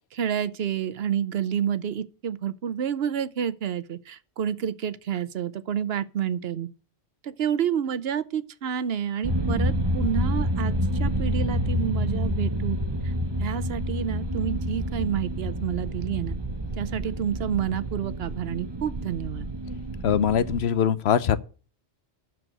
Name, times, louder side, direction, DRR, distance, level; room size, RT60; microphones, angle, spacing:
voice 1, 0.1-6.7 7.2-12.8 13.0-13.1 13.4-16.4 16.8-19.5, right 8 dB, 70° right, 0.9 m, -29 dB
sound 1, 9.2-20.6, equal, 25° right, 0.8 m, -28 dB
voice 2, 20.0-21.4, left 8 dB, 75° left, 0.9 m, -22 dB
12.5 x 4.7 x 7.8 m
omnidirectional pair, 1.1 m